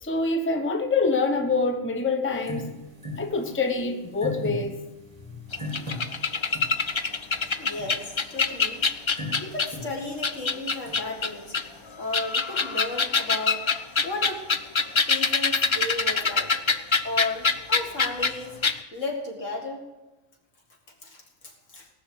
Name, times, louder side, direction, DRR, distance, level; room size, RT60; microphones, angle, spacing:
voice 1, 0.0-2.7 3.2-4.8, left 3 dB, 10° left, 6 dB, 0.8 m, -25 dB
sound 1, 2.3-11.9, left 1 dB, 25° right, 2.1 m, -40 dB
sound 2, 5.5-9.8 10.2-11.6 12.0-18.3 18.6-18.8, left 4 dB, 50° left, 0.3 m, -24 dB
voice 2, 7.6-8.9 9.4-11.6 12.0-13.7 14.0-14.5 15.1-16.6 17.0-18.6 18.9-19.8 21.0-21.9, left 2 dB, 80° left, 1 dB, 2.5 m, -34 dB
18.5 x 6.2 x 7.8 m, 1.1 s
omnidirectional pair, 1.3 m